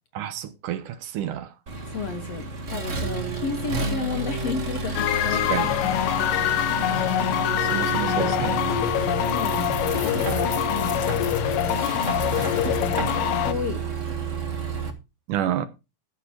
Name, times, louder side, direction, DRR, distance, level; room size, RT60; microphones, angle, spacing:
voice 1, 0.1-1.5 5.3-5.7 7.6-8.6 15.3-15.7, right 11 dB, 70° right, 2.3 m, -29 dB
Accelerating revving vroom, 1.7-14.9, right 4 dB, 50° right, 0.9 m, -30 dB
voice 2, 1.9-6.9 9.2-11.2 12.4-13.9, left 5 dB, 60° left, 1.8 m, -33 dB
sound 1, 5.0-13.5, left 13 dB, 80° left, 2.3 m, -25 dB
sound 2, 8.5-13.3, left 5 dB, 45° left, 1.3 m, -41 dB
12.5 x 7.0 x 4.5 m
omnidirectional pair, 4.0 m